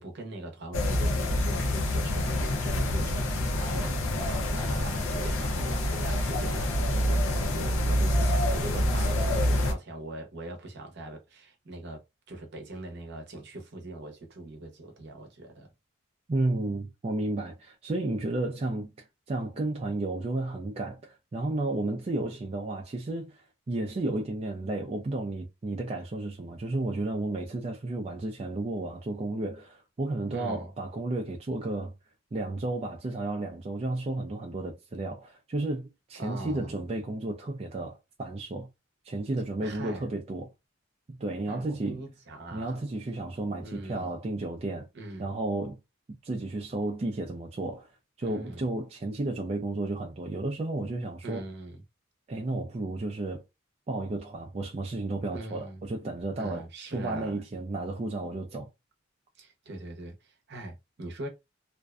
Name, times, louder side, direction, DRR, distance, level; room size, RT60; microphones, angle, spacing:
voice 1, 0.0-15.7 30.3-30.7 36.2-36.8 39.6-40.1 41.5-42.8 43.6-44.1 44.9-45.4 48.2-48.6 51.2-51.8 55.3-55.8 56.4-57.4 59.4-61.3, right 1 dB, 55° right, 0.7 m, -41 dB
sound 1, 0.7-9.7, left 1 dB, 70° left, 0.6 m, -27 dB
voice 2, 16.3-31.9 32.3-38.7 39.0-40.5 41.1-42.0 42.5-44.9 45.2-45.8 46.1-47.9 48.2-51.4 52.3-53.4 53.9-56.6 56.9-58.7, right 2 dB, 30° right, 0.4 m, -32 dB
2.5 x 2.1 x 2.3 m
head